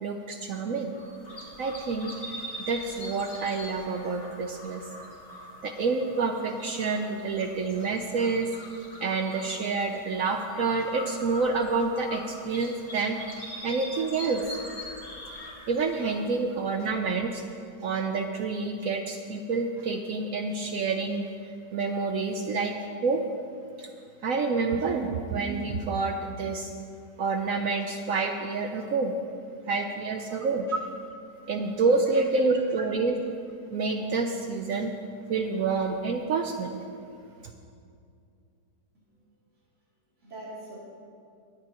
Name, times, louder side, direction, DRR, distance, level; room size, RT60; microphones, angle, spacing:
voice 1, 0.0-1.0 1.6-4.9 5.6-13.2 13.6-14.4 15.7-17.4 17.8-22.7 23.0-23.2 23.8-23.9 24.2-26.7 27.2-29.1 29.7-30.7 31.5-33.2 33.7-34.9 35.3-36.8, right 4 dB, 65° right, 4 dB, 0.9 m, -28 dB
sound 1, 0.9-17.0, left 1 dB, 35° left, 2.2 m, -43 dB
voice 2, 32.0-32.4 40.2-40.8, right 1 dB, 40° right, -8 dB, 3.2 m, -44 dB
21.5 x 8.9 x 3.0 m, 2.4 s
omnidirectional pair, 1.9 m